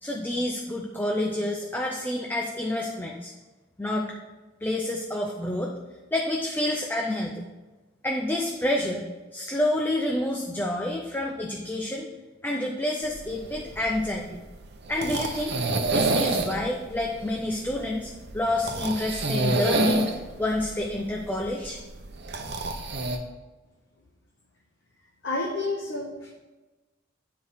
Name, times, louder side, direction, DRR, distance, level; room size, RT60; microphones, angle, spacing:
voice 1, 0.0-3.3 3.8-4.1 4.6-5.7 6.1-7.4 8.0-9.0 9.3-12.1 12.4-14.4 14.9-15.6 15.9-20.1 20.4-21.8, left 1 dB, 10° left, 0 dB, 0.6 m, -28 dB
sound 1, 13.1-23.2, right 2 dB, 60° right, 0.9 m, -29 dB
voice 2, 25.2-26.3, left 2 dB, 65° left, -1 dB, 1.1 m, -30 dB
9.1 x 4.8 x 5.6 m, 1.2 s
head